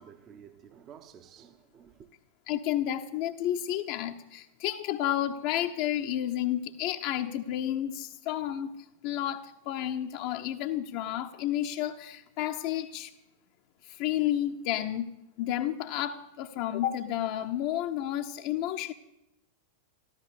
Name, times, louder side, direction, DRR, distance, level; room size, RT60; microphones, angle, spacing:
voice 1, 0.0-2.1, right 8 dB, 30° right, 1.1 m, -52 dB
voice 2, 2.5-8.7 9.0-13.1 13.8-15.1 15.4-18.9, left 12 dB, 45° left, 0.9 m, -31 dB
13.5 x 13.5 x 6.8 m
figure-of-eight pair, 90°, 0 cm